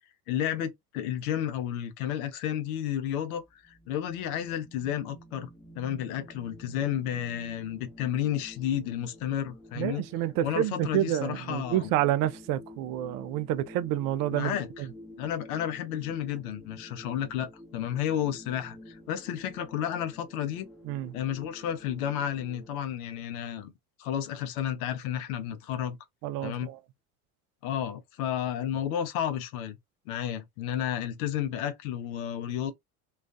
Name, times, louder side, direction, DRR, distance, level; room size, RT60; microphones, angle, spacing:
voice 1, 0.3-5.5 5.8-10.0 10.4-11.9 14.3-14.9 15.2-20.7 21.1-23.7 24.0-26.0 26.4-26.7 27.6-29.8 30.1-32.7, left 10 dB, 80° left, 0.7 m, -32 dB
sound 1, 3.4-22.7, left 1 dB, 5° left, 0.9 m, -50 dB
voice 2, 9.8-14.6 20.9-21.1 26.2-26.8, right 13 dB, 50° right, 0.4 m, -29 dB
2.3 x 2.3 x 2.4 m
hypercardioid pair, 75°, 43 cm